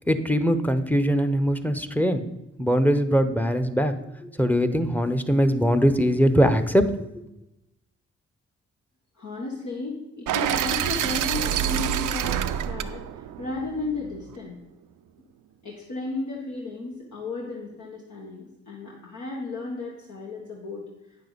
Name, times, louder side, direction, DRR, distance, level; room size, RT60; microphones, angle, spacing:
voice 1, 0.1-2.2 2.6-3.9 4.2-6.8, equal, 5° left, 9 dB, 0.8 m, -21 dB
voice 2, 9.1-14.6 15.6-20.8, left 3 dB, 70° left, -3 dB, 1.5 m, -34 dB
sound 1, 10.3-14.3, right 10 dB, 80° right, 0.5 m, -27 dB
9.0 x 6.7 x 4.0 m, 0.92 s
supercardioid pair, 45°, 31 cm